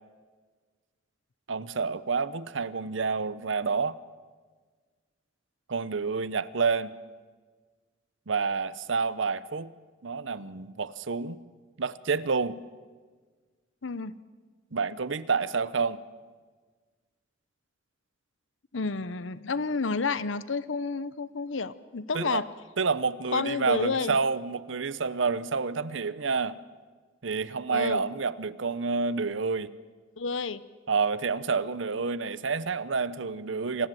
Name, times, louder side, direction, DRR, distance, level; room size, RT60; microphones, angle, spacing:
voice 1, 1.5-4.0 5.7-6.9 8.3-9.7 10.0-11.4 11.8-12.6 14.7-16.0 22.1-22.4 22.8-26.6 27.2-29.7 30.9-33.9, right 5 dB, 75° right, 17 dB, 0.8 m, -29 dB
voice 2, 13.8-14.1 18.7-22.5 23.3-24.2 27.7-28.0 30.2-30.6, left 4 dB, 75° left, 17 dB, 0.8 m, -30 dB
27.0 x 19.5 x 7.7 m, 1.5 s
head